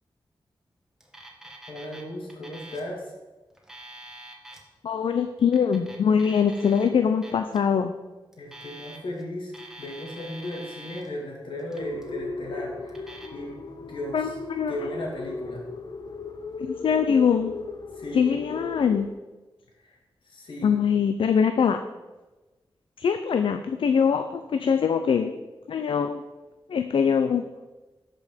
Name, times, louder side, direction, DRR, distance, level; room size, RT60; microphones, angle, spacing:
Alarm, 1.0-2.0 2.3-2.9 3.5-4.6 5.4-6.9 7.2-7.6 8.3-9.2 9.5-11.1 11.6-12.1 12.9-13.3, right 1 dB, 5° right, 1.5 m, -45 dB
voice 1, 1.7-3.1 8.4-14.3 14.7-15.7 18.0-18.3 19.8-20.0 20.2-20.8, left 1 dB, 75° left, -1 dB, 2.7 m, -36 dB
voice 2, 4.8-8.0 14.1-14.9 16.6-17.6 18.1-19.1 20.6-21.8 23.0-25.3 25.7-26.2 26.7-27.5, left 7 dB, 90° left, 7 dB, 0.5 m, -23 dB
sound 1, 11.8-19.1, left 3 dB, 50° left, 0.7 m, -37 dB
13.0 x 5.3 x 5.1 m, 1.2 s
wide cardioid pair, 130°, 9 cm